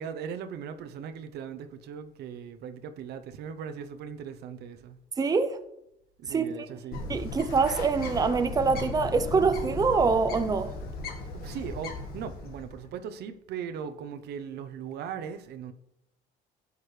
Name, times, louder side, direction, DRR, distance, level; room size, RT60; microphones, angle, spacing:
voice 1, 0.0-5.0 6.2-7.1 11.1-15.7, right 7 dB, 75° right, 0.8 m, -39 dB
voice 2, 5.2-5.6 6.3-6.5 7.1-10.7, right 4 dB, 20° right, 0.6 m, -25 dB
Bird, 6.9-12.8, left 2 dB, 65° left, 1.7 m, -36 dB
12.0 x 8.3 x 3.3 m
cardioid pair, 110°, 17 cm